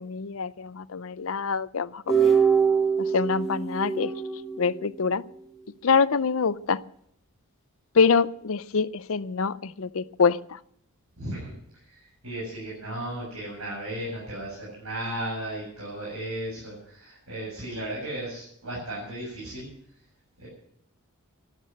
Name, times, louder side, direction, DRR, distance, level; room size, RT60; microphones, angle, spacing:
voice 1, 0.0-2.3 3.0-4.1 4.6-5.2 5.8-6.8 7.9-10.6, left 5 dB, 65° left, 0.6 m, -25 dB
sound 1, 2.1-5.3, right 6 dB, ahead, 1.5 m, -24 dB
voice 2, 11.2-19.7 20.4-20.5, right 1 dB, 75° right, 7.8 m, -35 dB
13.0 x 12.5 x 7.8 m
head